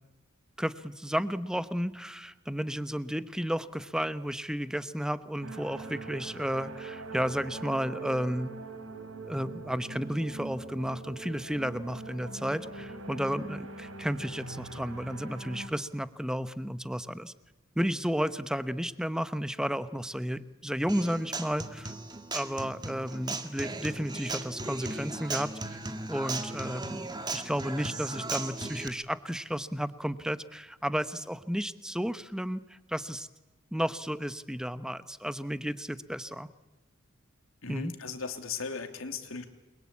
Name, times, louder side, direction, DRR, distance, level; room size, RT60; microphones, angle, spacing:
voice 1, 0.6-8.5 9.3-17.3 17.8-21.9 22.3-25.5 26.1-32.6 32.9-33.3 33.7-36.5 37.7-37.9, equal, 5° right, 13 dB, 1.0 m, -32 dB
sound 1, 5.4-15.7, right 3 dB, 85° right, 3.8 m, -42 dB
Human voice / Acoustic guitar, 20.9-28.9, right 3 dB, 20° right, 1.9 m, -37 dB
voice 2, 37.6-39.4, left 5 dB, 80° left, 6 dB, 3.1 m, -37 dB
29.0 x 22.5 x 8.5 m, 1.1 s
head